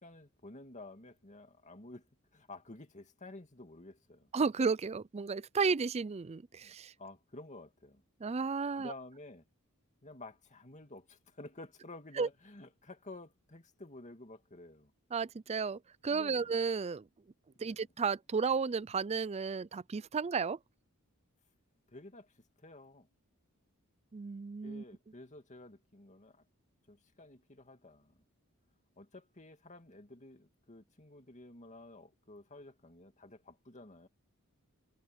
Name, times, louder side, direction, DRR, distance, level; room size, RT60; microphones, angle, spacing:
voice 1, 0.0-4.3 6.6-6.7 7.0-8.0 8.8-9.5 10.0-14.9 16.1-16.5 17.5-17.9 21.9-23.1 24.6-26.4 26.9-28.2 29.0-34.1, left 2 dB, 35° left, 2.4 m, -52 dB
voice 2, 4.3-6.9 8.2-8.9 12.2-12.3 15.1-17.1 17.6-20.6 24.1-24.8, right 5 dB, 30° right, 0.4 m, -33 dB
head